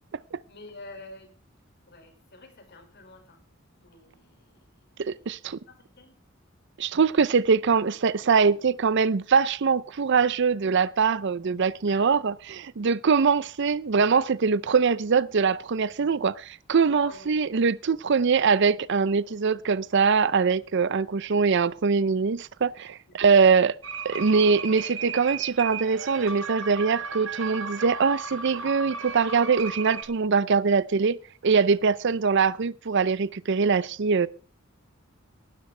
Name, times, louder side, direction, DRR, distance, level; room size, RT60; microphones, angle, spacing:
voice 1, 0.5-1.3 1.9-3.4 3.7-6.2 11.9-12.2 17.0-17.7 23.1-23.6, left 2 dB, 55° left, 5.3 m, -49 dB
voice 2, 5.0-5.6 6.8-23.7 24.0-31.2 31.4-34.3, right 5 dB, 60° right, 0.5 m, -23 dB
sound 1, 23.8-30.0, right 5 dB, 80° right, 3.5 m, -35 dB
18.5 x 12.5 x 3.3 m
head